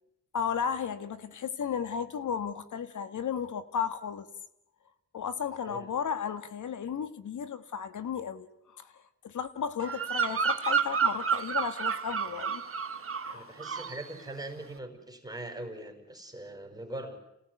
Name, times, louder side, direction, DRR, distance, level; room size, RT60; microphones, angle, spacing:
voice 1, 0.3-4.3 5.1-12.6 13.2-13.5, left 7 dB, 65° left, 11 dB, 1.9 m, -34 dB
Bird vocalization bird call bird song, 9.8-13.4 13.6-14.0, right 6 dB, 40° right, 1.7 m, -30 dB
voice 2, 13.3-17.2, right 1 dB, 10° right, 5 dB, 5.1 m, -41 dB
27.5 x 18.0 x 9.5 m, 0.84 s
cardioid pair, 75°, 33 cm